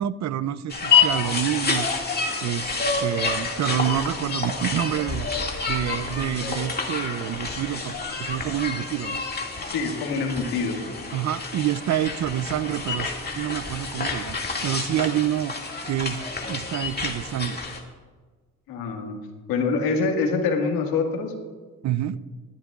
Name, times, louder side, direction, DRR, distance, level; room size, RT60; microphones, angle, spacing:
voice 1, 0.0-1.9 2.4-5.3 5.7-9.2 11.1-15.5 15.9-17.6 21.8-22.2, right 11 dB, 50° right, 16 dB, 0.5 m, -27 dB
sound 1, 0.7-17.8, left 5 dB, 30° left, 2.2 m, -28 dB
voice 2, 9.7-10.8 18.7-19.2 19.5-21.3, left 4 dB, 85° left, 3 dB, 1.9 m, -25 dB
19.5 x 11.5 x 2.4 m, 1.4 s
supercardioid pair, 65°, 35 cm